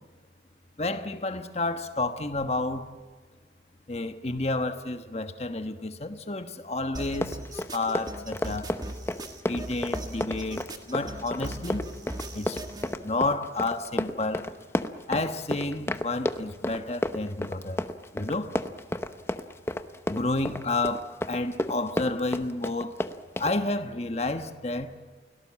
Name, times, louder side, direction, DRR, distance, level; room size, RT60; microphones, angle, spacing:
voice 1, 0.8-2.9 3.9-8.7 9.5-10.6 10.9-11.9 12.3-12.6 13.0-14.4 15.1-17.8 18.1-18.5 20.1-22.9 23.4-24.9, left 2 dB, 35° left, 8 dB, 1.2 m, -30 dB
sound 1, 6.9-12.9, right 1 dB, 25° right, 1.7 m, -39 dB
Run, 7.1-23.5, left 1 dB, 15° left, 0.8 m, -32 dB
29.0 x 18.0 x 7.4 m, 1.5 s
head